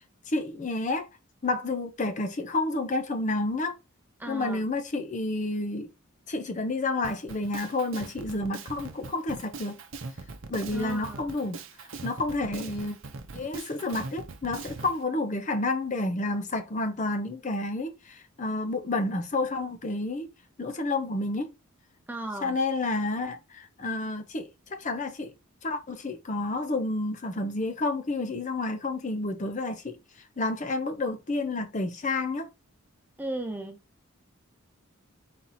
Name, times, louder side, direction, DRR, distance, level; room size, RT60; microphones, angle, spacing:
voice 1, 0.3-1.1 1.4-3.8 4.3-5.9 6.3-9.8 10.5-13.0 13.3-20.3 20.6-21.5 22.4-25.3 25.6-30.0 30.4-32.5, left 2 dB, 35° left, 0.6 m, -30 dB
voice 2, 4.2-4.6 10.7-11.3 22.1-22.5 33.2-33.8, right 2 dB, 10° right, 0.6 m, -35 dB
Drum kit, 7.0-15.0, right 3 dB, 60° right, 0.7 m, -41 dB
4.2 x 2.9 x 4.1 m
head